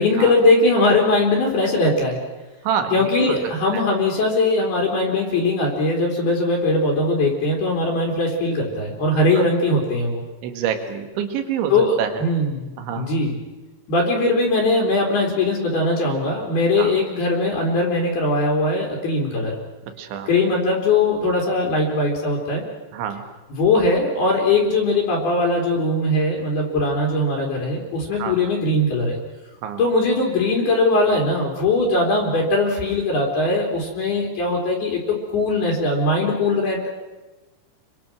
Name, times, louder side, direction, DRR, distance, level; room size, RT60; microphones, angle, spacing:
voice 1, 0.0-2.2 2.9-10.2 11.7-12.7 12.9-13.4 13.9-19.6 20.3-22.6 23.5-29.2 29.8-36.9, left 2 dB, 55° left, -1 dB, 5.6 m, -20 dB
voice 2, 2.6-3.4 9.1-9.4 10.4-11.7 12.0-12.1 12.8-13.1 16.8-16.9 20.0-20.3 22.9-23.2 28.2-28.4 29.6-29.8, right 8 dB, 80° right, 7 dB, 4.3 m, -26 dB
29.5 x 24.0 x 6.2 m, 1.1 s
omnidirectional pair, 5.4 m